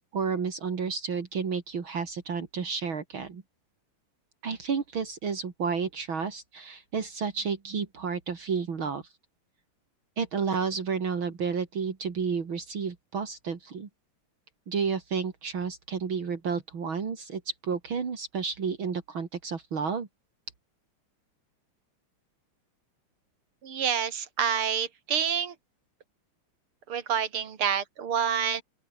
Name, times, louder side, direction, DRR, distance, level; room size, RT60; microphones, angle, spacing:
voice 1, 0.1-3.4 4.4-9.0 10.2-13.9 14.7-20.1, right 5 dB, 65° right, 3.4 m, -31 dB
voice 2, 23.6-25.5 26.9-28.6, right 8 dB, 85° right, 2.9 m, -28 dB
open air
omnidirectional pair, 2.3 m